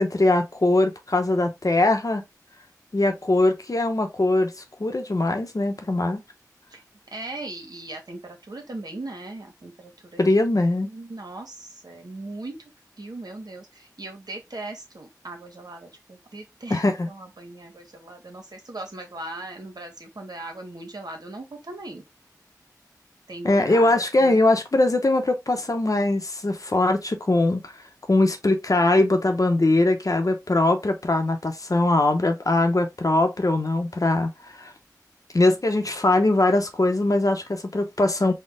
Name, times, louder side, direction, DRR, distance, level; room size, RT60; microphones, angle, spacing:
voice 1, 0.0-2.2 2.9-4.5 4.8-6.2 10.2-10.9 16.7-17.1 23.4-27.7 28.1-34.3 34.6-34.7 35.3-38.3, left 2 dB, 55° left, 0.9 m, -21 dB
voice 2, 7.1-10.2 10.8-12.6 13.0-22.0 23.3-24.4, right 2 dB, 75° right, 1.3 m, -38 dB
4.4 x 2.3 x 3.5 m
wide cardioid pair, 45°, 7 cm